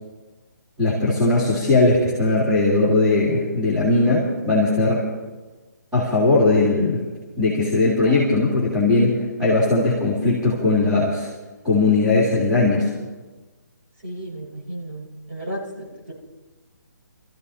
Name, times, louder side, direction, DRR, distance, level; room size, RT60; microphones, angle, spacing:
voice 1, 0.8-5.1 5.9-7.0 7.4-11.3 11.6-12.9, left 2 dB, 5° right, -11 dB, 2.5 m, -19 dB
voice 2, 8.0-8.4 14.0-16.1, right 1 dB, 35° right, -5 dB, 4.8 m, -34 dB
26.0 x 14.5 x 2.8 m, 1.2 s
hypercardioid pair, 160°, 10 cm